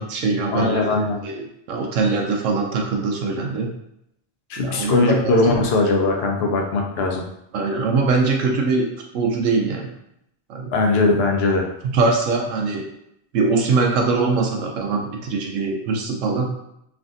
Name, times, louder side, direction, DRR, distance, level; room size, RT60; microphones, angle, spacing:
voice 1, 0.0-1.4 1.7-3.7 4.6-5.3 7.5-8.9 9.1-9.9 10.5-10.7 11.8-12.8 13.3-16.5, right 4 dB, 80° right, 1 dB, 1.0 m, -22 dB
voice 2, 0.5-1.2 4.5-7.2 10.7-11.7, left 3 dB, 65° left, 2 dB, 0.7 m, -20 dB
3.3 x 2.5 x 2.5 m, 0.78 s
omnidirectional pair, 1.3 m